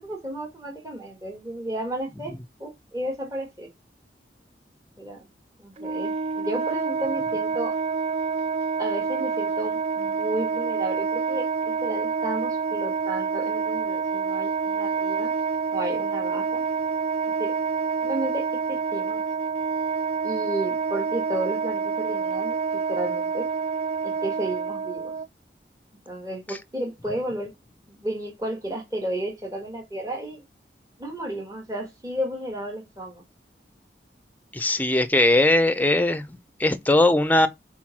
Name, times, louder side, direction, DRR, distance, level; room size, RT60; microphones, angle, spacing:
voice 1, 0.0-3.7 5.0-5.3 5.6-7.8 8.8-15.3 15.7-16.6 17.4-17.5 18.0-19.2 20.2-23.5 24.0-25.1 26.1-27.5 27.9-30.4 31.0-33.2, right 1 dB, 20° right, 1.6 m, -33 dB
Wind instrument woodwind instrument, 5.8-25.3, right 5 dB, 35° right, 0.3 m, -27 dB
voice 2, 34.5-36.2 36.6-37.5, left 2 dB, 10° left, 0.6 m, -19 dB
4.6 x 4.5 x 5.9 m
head